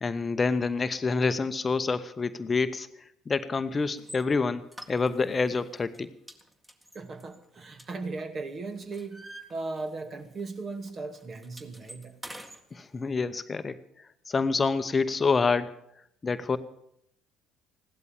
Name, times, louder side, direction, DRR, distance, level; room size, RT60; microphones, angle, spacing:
voice 1, 0.0-6.1 12.7-13.8 14.3-15.7 16.2-16.6, left 4 dB, 30° left, 12 dB, 0.9 m, -27 dB
sound 1, 4.0-4.2 4.7-5.4 5.8-6.0 6.3-8.3 8.7-10.1 10.4-10.6 10.9-12.6, right 1 dB, 10° right, 2.0 m, -47 dB
voice 2, 6.9-9.2 9.5-12.2, right 3 dB, 45° right, 6 dB, 2.3 m, -37 dB
15.5 x 12.0 x 7.2 m, 0.74 s
hypercardioid pair, 60°, 0 cm